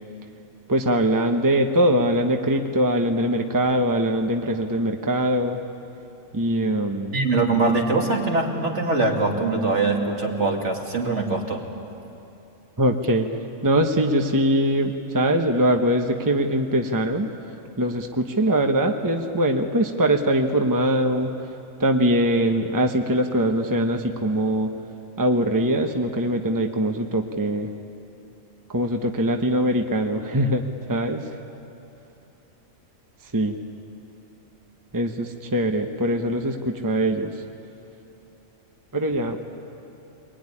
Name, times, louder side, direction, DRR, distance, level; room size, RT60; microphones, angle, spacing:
voice 1, 0.7-5.6 6.3-7.1 12.8-13.3 13.6-17.3 17.8-21.3 21.8-24.7 25.2-27.7 28.7-30.6 30.9-31.3 33.3-33.5 34.9-37.3 38.9-39.4, right 1 dB, 15° right, 4 dB, 1.0 m, -22 dB
voice 2, 7.1-11.6, right 3 dB, 60° right, 1 dB, 2.6 m, -22 dB
23.5 x 21.5 x 9.9 m, 2.9 s
omnidirectional pair, 1.4 m